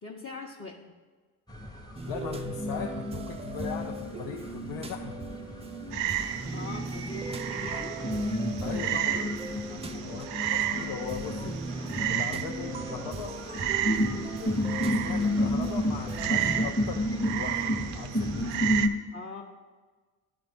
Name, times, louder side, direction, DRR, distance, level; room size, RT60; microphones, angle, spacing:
voice 1, 0.0-0.9 6.5-8.0 9.7-10.1 19.1-19.4, left 4 dB, 30° left, -3 dB, 0.9 m, -42 dB
sound 1, 1.5-18.9, left 1 dB, 10° left, 0.9 m, -32 dB
sound 2, 1.9-16.7, right 3 dB, 15° right, 0.4 m, -40 dB
voice 2, 2.1-5.3 8.6-9.2 10.0-11.6 12.0-13.4 14.0-17.7 17.9-18.7, left 7 dB, 70° left, 2 dB, 0.7 m, -39 dB
Frog, 5.9-18.9, right 12 dB, 75° right, 0.6 m, -33 dB
11.5 x 4.0 x 3.6 m, 1.4 s
supercardioid pair, 60°, 42 cm